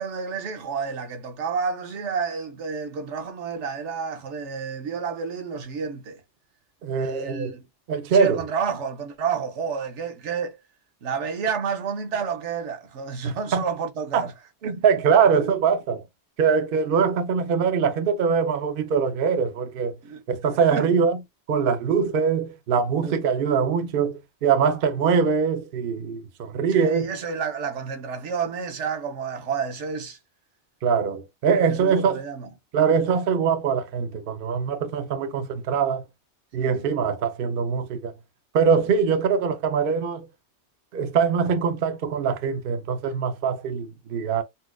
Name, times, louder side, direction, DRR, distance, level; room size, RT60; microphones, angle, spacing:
voice 1, 0.0-6.2 7.0-7.7 8.1-10.6 11.0-14.3 14.6-14.8 15.4-15.5 20.0-20.2 20.7-20.9 23.0-23.2 26.7-30.2 31.7-32.5 36.6-36.8 38.7-38.8, right 6 dB, 80° right, 1.1 m, -30 dB
voice 2, 6.8-7.5 7.9-8.4 13.2-13.6 14.1-14.2 14.6-16.0 16.4-19.9 20.3-21.2 21.5-27.1 30.8-32.2 32.7-36.0 36.5-38.1 38.5-40.3 40.9-44.4, right 6 dB, 60° right, 0.7 m, -23 dB
4.1 x 2.4 x 2.2 m
omnidirectional pair, 1.2 m